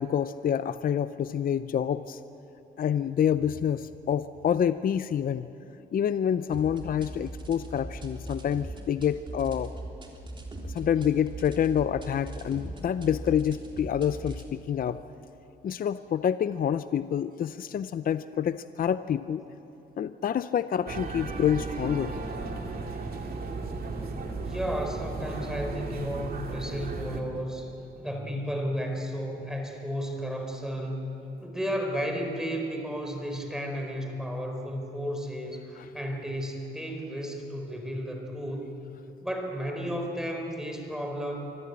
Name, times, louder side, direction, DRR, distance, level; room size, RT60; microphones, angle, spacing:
voice 1, 0.0-2.2 2.8-5.5 5.9-9.7 10.6-15.0 15.6-19.4 20.0-22.1, left 9 dB, 45° left, 13 dB, 0.6 m, -27 dB
sound 1, 6.5-14.5, right 1 dB, 25° right, 3.5 m, -40 dB
sound 2, 20.9-27.2, right 3 dB, 50° right, 2.4 m, -35 dB
voice 2, 24.4-31.0 31.4-38.7 39.2-41.4, equal, 5° right, 2 dB, 4.6 m, -33 dB
25.0 x 14.5 x 8.7 m, 3.0 s
cardioid pair, 90°, 20 cm